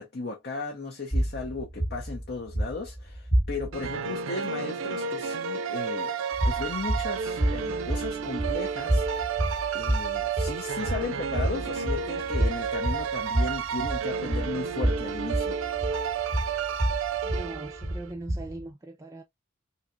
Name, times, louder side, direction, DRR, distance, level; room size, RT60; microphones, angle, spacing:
voice 1, 0.0-9.3 9.7-15.6, left 3 dB, 50° left, 0.7 m, -36 dB
sound 1, 1.1-3.9 6.3-18.7, right 1 dB, 25° left, 1.0 m, -29 dB
sound 2, 3.7-18.0, right 6 dB, 90° right, 0.4 m, -31 dB
voice 2, 17.2-19.2, right 2 dB, 15° right, 0.3 m, -40 dB
3.4 x 2.8 x 2.5 m
head